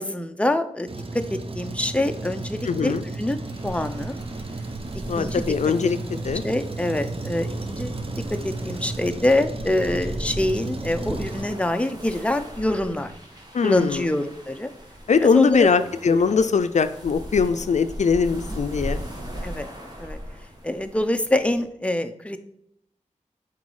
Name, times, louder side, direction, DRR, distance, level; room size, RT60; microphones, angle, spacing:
voice 1, 0.0-4.1 5.2-5.5 6.1-8.0 8.3-13.1 13.6-14.7 15.2-15.7 16.1-16.2 18.3-18.4 19.4-19.7 20.0-20.2 20.6-22.4, left 1 dB, 10° left, 8 dB, 0.6 m, -25 dB
Truck, 0.9-12.1, right 2 dB, 50° right, 0.8 m, -33 dB
voice 2, 2.6-3.0 5.1-6.0 6.2-6.4 13.5-14.1 15.1-19.0, left 5 dB, 70° left, 11 dB, 0.4 m, -21 dB
sound 1, 3.5-21.6, equal, 30° right, 1.9 m, -39 dB
8.3 x 3.9 x 4.8 m, 0.74 s
wide cardioid pair, 65°, 13 cm